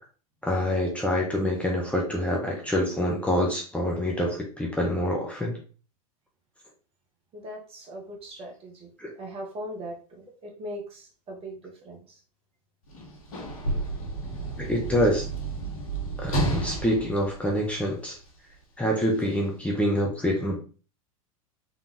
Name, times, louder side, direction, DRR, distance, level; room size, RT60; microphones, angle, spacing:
voice 1, 0.4-5.5 9.0-9.1 14.6-15.3 16.2-18.2 18.8-20.6, equal, 5° left, -2 dB, 1.1 m, -26 dB
voice 2, 7.3-8.9 9.2-12.2 16.6-16.7, equal, 30° right, 1 dB, 1.5 m, -40 dB
Sliding door / Slam, 12.9-18.3 19.2-19.3, right 2 dB, 70° left, 1.5 m, -31 dB
4.1 x 3.6 x 3.1 m, 0.37 s
hypercardioid pair, 90°, 18 cm